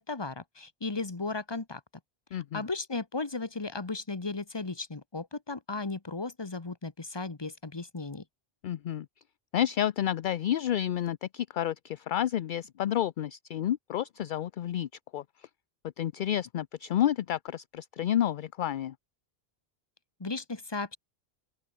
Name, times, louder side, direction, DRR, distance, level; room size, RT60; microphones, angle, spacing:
voice 1, 0.0-1.8 2.5-8.2 20.2-21.0, left 3 dB, 25° left, 1.3 m, -35 dB
voice 2, 2.3-2.6 8.6-9.1 9.5-15.5 16.0-18.9, left 11 dB, 60° left, 0.6 m, -30 dB
open air
omnidirectional pair, 1.1 m